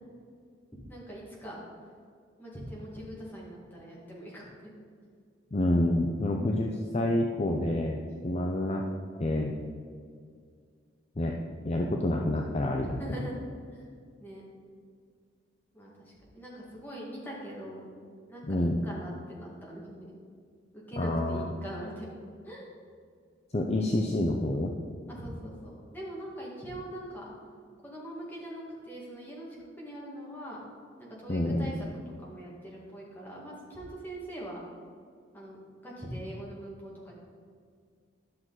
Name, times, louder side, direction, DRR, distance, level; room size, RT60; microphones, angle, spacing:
voice 1, 0.9-1.6 2.4-4.7 12.8-13.4 13.7-13.9 14.2-14.4 15.7-17.8 18.3-20.1 20.7-22.1 22.4-22.7 25.1-27.3 27.8-29.5 29.8-30.6 31.0-31.9 32.2-34.6 35.3-35.6 35.8-37.1, right 1 dB, 10° left, -5 dB, 1.9 m, -42 dB
voice 2, 5.5-8.8 9.2-9.6 11.2-11.4 11.6-13.0 18.5-18.8 21.0-21.5 23.5-24.7 31.3-31.7, left 1 dB, 35° left, 1 dB, 0.5 m, -28 dB
11.5 x 6.2 x 4.0 m, 2.1 s
head